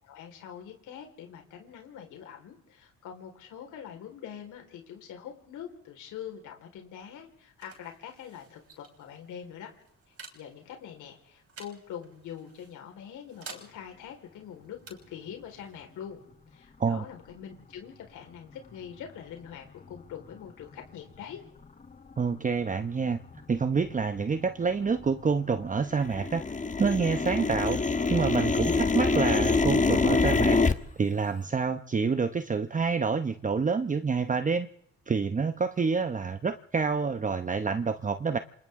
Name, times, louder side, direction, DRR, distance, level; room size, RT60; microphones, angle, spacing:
voice 1, 0.0-9.7 10.1-16.2 16.5-21.4, left 9 dB, 85° left, 3 dB, 4.6 m, -44 dB
sound 1, 6.8-18.2, right 5 dB, 50° right, 6.3 m, -53 dB
sound 2, 19.9-20.0 20.6-20.7 21.3-21.6 22.1-22.2 22.5-23.0 23.3-25.6 25.9-30.7, left 4 dB, 25° left, 1.3 m, -26 dB
voice 2, 22.2-23.2 23.5-26.4 26.8-27.8 28.1-30.6 31.0-34.7 35.1-38.4, right 5 dB, 25° right, 10 dB, 0.9 m, -27 dB
28.5 x 26.0 x 3.7 m, 0.70 s
cardioid pair, 90°, 30 cm